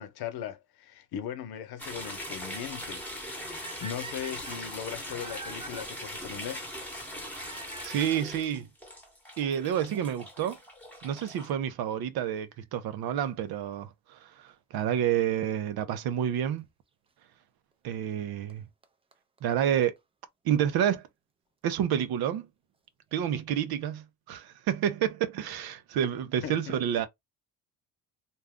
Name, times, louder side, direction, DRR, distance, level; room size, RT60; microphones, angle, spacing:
voice 1, 0.0-3.1 3.4-6.6 26.4-27.0, left 9 dB, 80° left, 0.8 m, -39 dB
sound 1, 1.8-11.5, equal, 5° left, 1.0 m, -40 dB
sound 2, 3.6-5.8 7.3-8.4 9.3-9.4 10.1-10.2 10.4-10.5 12.4-12.6 15.4-15.5 16.6-16.7 18.1-18.2 18.5-18.6 18.8-18.9 19.1-19.2 19.4-19.5 19.6-19.7 20.0-20.1, right 3 dB, 15° right, 0.4 m, -45 dB
voice 2, 7.8-8.7 9.4-10.6 11.0-16.7 17.8-18.6 19.4-20.0 20.4-21.1 21.6-22.5 23.1-27.1, right 9 dB, 75° right, 0.7 m, -29 dB
2.6 x 2.3 x 3.5 m
cardioid pair, 125°, 37 cm